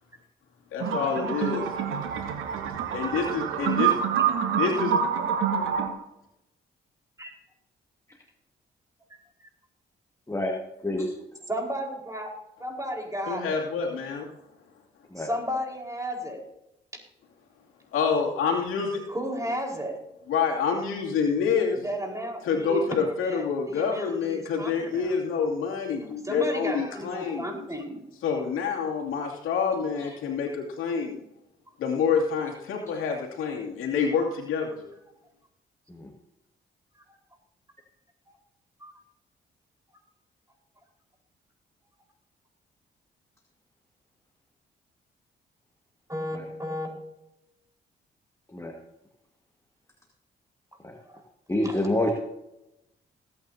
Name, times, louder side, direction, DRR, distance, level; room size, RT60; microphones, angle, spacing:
voice 1, 0.7-1.7 2.2-4.0 4.5-4.9 13.3-14.3 17.9-19.0 20.3-21.8 22.4-27.7 28.2-31.2 31.8-34.8, left 6 dB, 80° left, -1 dB, 2.6 m, -27 dB
sound 1, 0.8-5.9, right 8 dB, 85° right, 1.3 m, -27 dB
voice 2, 10.3-10.6 10.8-11.1 15.1-15.3 35.9-36.1 48.5-48.7 50.8-50.9 51.5-52.1, left 1 dB, 15° left, 1 dB, 2.0 m, -27 dB
voice 3, 11.5-12.3 12.6-13.6 15.2-16.4 19.1-20.0 21.8-22.8 23.2-25.1 26.2-28.0 37.0-37.1 38.3-38.4 38.8-38.9 46.1-46.9 51.0-51.2 51.6-51.8, equal, 15° right, 0 dB, 4.5 m, -33 dB
20.5 x 9.2 x 2.8 m, 0.87 s
supercardioid pair, 50°, 21 cm